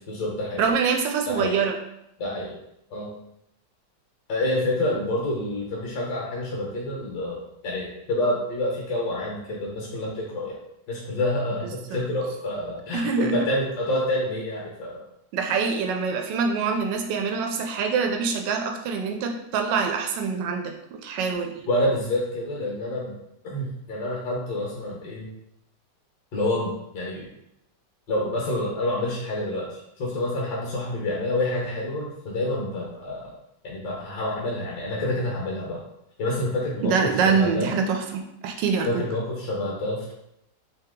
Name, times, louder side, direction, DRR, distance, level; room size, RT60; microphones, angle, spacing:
voice 1, 0.1-0.6 1.3-1.6 2.2-2.6 2.9-3.1 4.3-10.6 10.9-15.0 21.7-23.1 23.4-25.3 26.3-27.3 28.1-33.3 33.6-35.8 36.2-37.7 38.8-40.1, left 1 dB, 70° left, -4 dB, 1.5 m, -28 dB
voice 2, 0.6-1.8 11.9-12.0 12.9-13.5 15.3-21.6 36.8-39.0, right 5 dB, 85° right, 3 dB, 1.2 m, -25 dB
3.4 x 2.8 x 3.6 m, 0.81 s
omnidirectional pair, 1.9 m